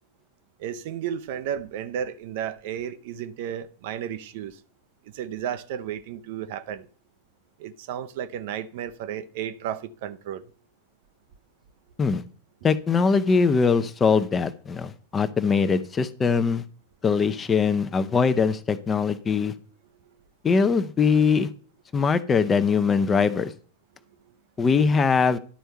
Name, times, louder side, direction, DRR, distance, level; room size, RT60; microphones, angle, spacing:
voice 1, 0.6-4.6 5.1-6.9 7.6-10.4, right 9 dB, 50° right, 0.6 m, -33 dB
voice 2, 12.6-16.6 17.0-19.5 20.4-21.5 21.9-23.5 24.6-25.4, left 5 dB, 20° left, 0.7 m, -22 dB
11.5 x 4.5 x 6.4 m
figure-of-eight pair, 90°, 0 cm